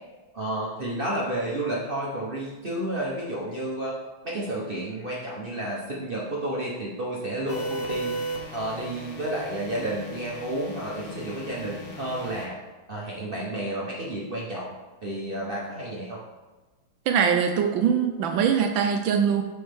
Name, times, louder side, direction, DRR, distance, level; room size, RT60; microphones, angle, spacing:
voice 1, 0.3-4.0 4.2-8.2 8.5-12.6 12.9-14.8 15.0-16.2, right 1 dB, 45° right, -4 dB, 0.7 m, -31 dB
sound 1, 7.5-12.5, right 1 dB, 55° left, 0.6 m, -36 dB
voice 2, 17.1-19.4, right 7 dB, 75° right, 5 dB, 1.2 m, -22 dB
7.7 x 5.4 x 3.5 m, 1.2 s
omnidirectional pair, 2.4 m